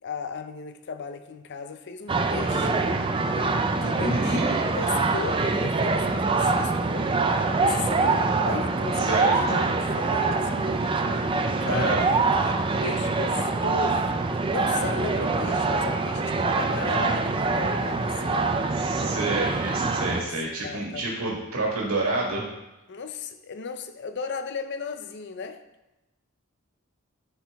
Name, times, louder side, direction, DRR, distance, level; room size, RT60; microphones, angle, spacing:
voice 1, 0.0-2.8 3.8-7.2 7.6-12.1 12.4-14.2 14.5-18.5 19.8-20.3 20.6-21.1 22.9-25.6, left 5 dB, 55° left, 9 dB, 0.5 m, -36 dB
sound 1, 2.1-20.2, right 3 dB, 25° right, 0.4 m, -24 dB
voice 2, 4.0-4.5 8.9-9.4 11.7-12.1 14.8-15.4 18.7-22.4, right 2 dB, 75° right, -3 dB, 1.6 m, -28 dB
9.8 x 4.5 x 3.5 m, 0.97 s
head